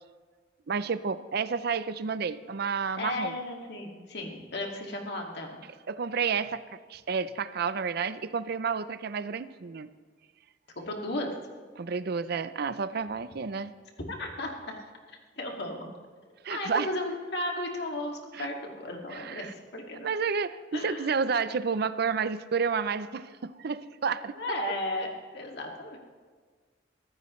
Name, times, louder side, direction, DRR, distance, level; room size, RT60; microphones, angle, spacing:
voice 1, 0.7-3.3 5.9-9.9 11.8-13.7 16.4-16.9 18.3-18.5 19.1-19.5 20.0-24.4, right 5 dB, 60° right, 14 dB, 0.5 m, -30 dB
voice 2, 2.9-5.6 10.8-11.3 14.1-14.7 15.4-15.9 16.5-20.1 20.7-21.2 24.4-26.0, left 1 dB, 65° left, 1 dB, 2.2 m, -35 dB
23.5 x 15.0 x 3.2 m, 1.6 s
head